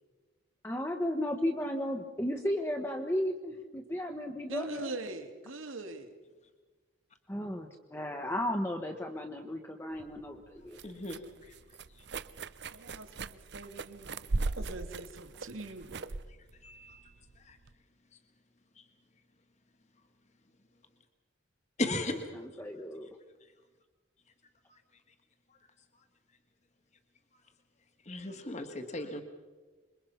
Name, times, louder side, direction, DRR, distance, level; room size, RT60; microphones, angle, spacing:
voice 1, 0.6-4.9 7.3-10.8 22.1-23.1, left 1 dB, 10° left, 3 dB, 1.3 m, -34 dB
voice 2, 4.5-6.1 12.7-14.1 14.4-16.1, right 2 dB, 90° right, 6 dB, 2.6 m, -42 dB
sound 1, 10.0-17.7, right 3 dB, 55° right, 0.7 m, -39 dB
voice 3, 10.8-11.2 16.6-17.0 17.5-17.6 21.8-22.2 28.1-29.2, left 2 dB, 35° left, 6 dB, 1.9 m, -35 dB
27.0 x 23.0 x 5.8 m, 1.3 s
head